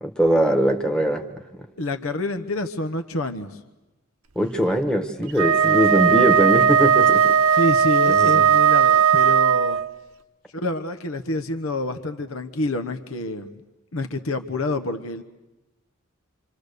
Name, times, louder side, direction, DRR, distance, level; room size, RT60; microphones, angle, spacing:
voice 1, 0.0-1.2 4.3-7.2 8.1-8.4, right 1 dB, 5° left, 3 dB, 1.3 m, -21 dB
voice 2, 1.8-3.6 7.5-9.8 10.5-13.6 13.9-15.2, left 2 dB, 75° left, 8 dB, 1.1 m, -28 dB
Wind instrument woodwind instrument, 5.3-9.9, right 7 dB, 75° right, 1.0 m, -17 dB
28.0 x 26.5 x 6.8 m, 1.0 s
head